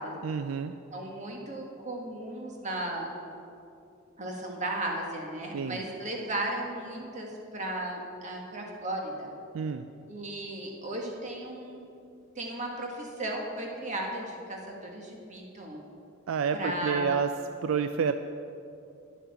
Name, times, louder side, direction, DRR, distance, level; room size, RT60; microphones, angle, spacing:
voice 1, 0.2-0.7 5.5-5.8 9.5-9.9 16.3-17.3 17.6-18.1, right 6 dB, 75° right, 10 dB, 0.4 m, -29 dB
voice 2, 0.9-3.1 4.2-9.3 10.1-11.8 12.4-15.8 16.5-17.2, right 1 dB, 35° right, 0 dB, 1.7 m, -35 dB
10.5 x 7.3 x 7.0 m, 2.6 s
head